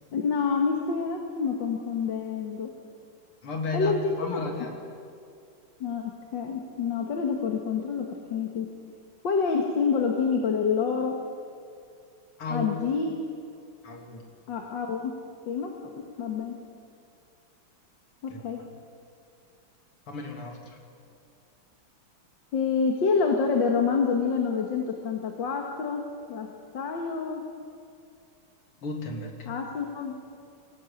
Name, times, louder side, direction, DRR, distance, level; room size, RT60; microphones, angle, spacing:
voice 1, 0.1-2.7 3.7-4.4 5.8-8.7 9.2-11.2 12.5-13.1 14.5-15.1 15.5-16.6 18.2-18.6 22.5-26.5 26.7-27.4 29.5-30.2, left 5 dB, 60° left, 2 dB, 2.2 m, -27 dB
voice 2, 3.4-4.8 12.4-12.8 13.8-14.2 18.3-18.4 20.1-20.8 28.8-29.5, left 3 dB, 85° left, 2 dB, 3.5 m, -34 dB
22.5 x 18.0 x 8.6 m, 2.4 s
omnidirectional pair, 2.4 m